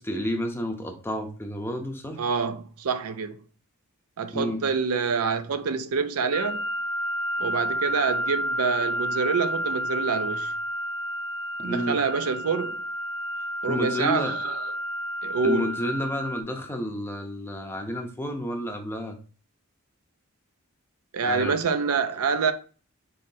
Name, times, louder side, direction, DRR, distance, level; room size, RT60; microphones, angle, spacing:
voice 1, 0.0-2.2 4.3-4.6 11.6-12.0 13.7-14.3 15.4-19.2 21.2-21.6, left 1 dB, 10° left, 0.6 m, -30 dB
voice 2, 2.2-3.4 4.2-6.7 7.4-10.5 11.6-12.8 13.6-14.7 15.2-15.7 21.1-22.5, right 5 dB, 85° right, 0.5 m, -26 dB
sound 1, 6.3-16.4, equal, 80° left, 0.9 m, -30 dB
5.5 x 3.1 x 2.7 m
head